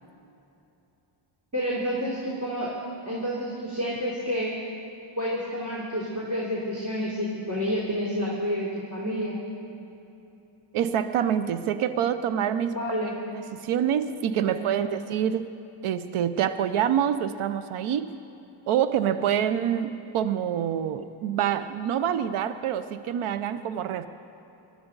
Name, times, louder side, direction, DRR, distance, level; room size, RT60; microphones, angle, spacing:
voice 1, 1.5-2.7 3.0-4.5 5.2-9.4 12.7-13.1 14.4-14.9, equal, 35° right, -7 dB, 3.3 m, -29 dB
voice 2, 10.7-12.7 13.3-15.5 15.8-18.1 18.7-24.1, right 9 dB, 85° right, 12 dB, 0.7 m, -26 dB
20.5 x 13.0 x 3.9 m, 3.0 s
cardioid pair, 95°, 50 cm